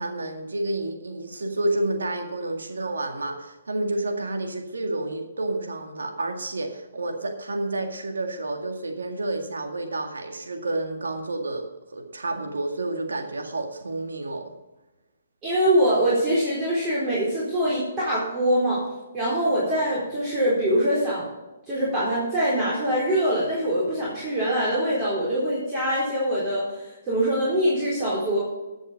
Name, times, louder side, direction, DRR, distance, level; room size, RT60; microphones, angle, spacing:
voice 1, 0.0-14.5, right 2 dB, 90° right, 4 dB, 2.0 m, -30 dB
voice 2, 15.4-18.8 19.1-21.3 21.7-28.4, equal, 20° right, -7 dB, 4.0 m, -23 dB
14.0 x 6.4 x 5.3 m, 1.1 s
hypercardioid pair, 145°, 0 cm